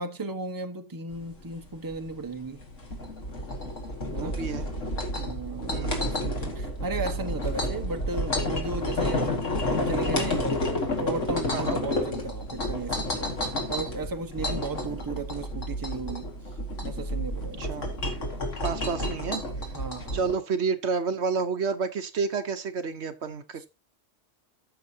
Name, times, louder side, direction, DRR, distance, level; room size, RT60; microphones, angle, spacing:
voice 1, 0.0-2.6 4.1-4.4 5.2-9.3 9.7-10.6 11.0-16.3 16.8-17.7 18.9-19.1 19.7-20.2 23.6-23.7, right 3 dB, 20° right, 1.0 m, -35 dB
sound 1, 1.1-20.4, left 1 dB, 90° left, 2.4 m, -30 dB
voice 2, 4.1-4.7 5.7-6.3 11.5-11.8 17.6-17.9 18.6-19.4 20.1-23.7, right 5 dB, 65° right, 1.1 m, -30 dB
14.0 x 6.6 x 2.8 m
omnidirectional pair, 1.3 m